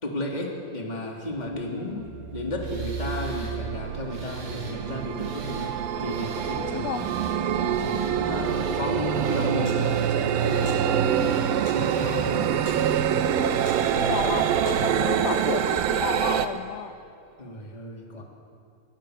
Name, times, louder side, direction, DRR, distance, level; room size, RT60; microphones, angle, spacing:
voice 1, 0.0-2.0 2.3-5.7 6.0-7.0 7.5-11.4 11.7-12.5 17.4-18.2, left 1 dB, 10° left, -1 dB, 2.5 m, -33 dB
sound 1, 1.5-1.6 2.0-16.5, right 8 dB, 75° right, 2.2 m, -26 dB
voice 2, 1.8-2.1 6.6-7.1 13.9-16.9, left 10 dB, 80° left, 7 dB, 2.2 m, -32 dB
Tools, 2.6-3.5 4.1-4.8 5.2-5.7 6.1-6.6 6.9-7.4 7.7-8.1 8.4-8.8 9.1-9.5 9.8-10.8 11.1-11.5 11.8-12.3 12.6-13.0 13.4-14.0, right 2 dB, 55° right, 7.8 m, -47 dB
sound 2, 9.0-15.3, left 1 dB, 40° left, 9.2 m, -50 dB
27.5 x 24.0 x 6.7 m, 2.4 s
omnidirectional pair, 5.4 m